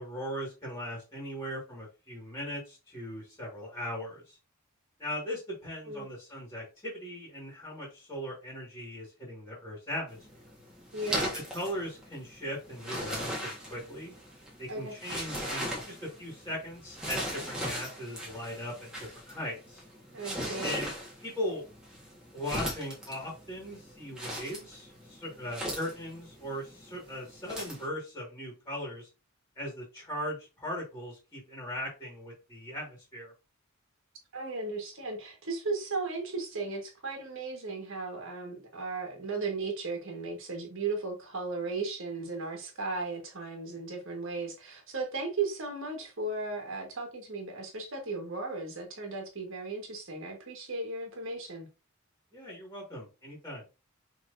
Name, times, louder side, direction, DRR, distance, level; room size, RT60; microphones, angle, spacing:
voice 1, 0.0-4.4 5.0-10.2 11.5-14.1 14.6-19.8 20.6-20.9 21.2-21.6 22.3-29.1 29.6-33.3 52.3-53.6, equal, 10° left, 2.0 m, -39 dB
sound 1, 10.1-27.9, equal, 5° right, 1.5 m, -39 dB
voice 2, 10.9-11.3 14.7-14.9 20.1-20.7 34.3-51.7, right 3 dB, 60° right, 1.6 m, -36 dB
5.9 x 3.3 x 2.7 m
head